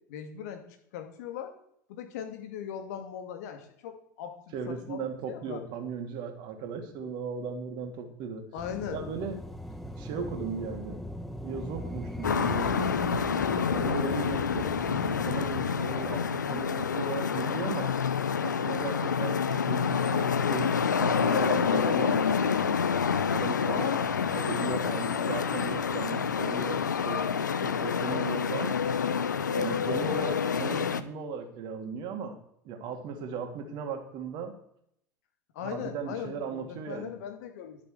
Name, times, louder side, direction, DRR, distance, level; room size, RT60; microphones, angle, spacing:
voice 1, 0.1-0.6 0.9-1.5 1.9-4.4 4.7-5.6 8.5-9.0 23.7-24.1 35.5-37.8, left 9 dB, 65° left, 6 dB, 2.4 m, -38 dB
voice 2, 4.5-8.4 8.9-9.4 10.0-11.0 11.4-13.0 13.7-17.9 18.4-22.8 23.3-24.0 24.3-27.3 27.6-28.8 29.6-32.4 32.6-34.5 35.6-37.1, right 5 dB, 50° right, 5 dB, 2.7 m, -37 dB
sound 1, 8.6-17.6, equal, ahead, 1.1 m, -40 dB
sound 2, 12.2-31.0, left 6 dB, 85° left, 0.7 m, -28 dB
11.5 x 7.3 x 8.0 m, 0.70 s
figure-of-eight pair, 80°, 10 cm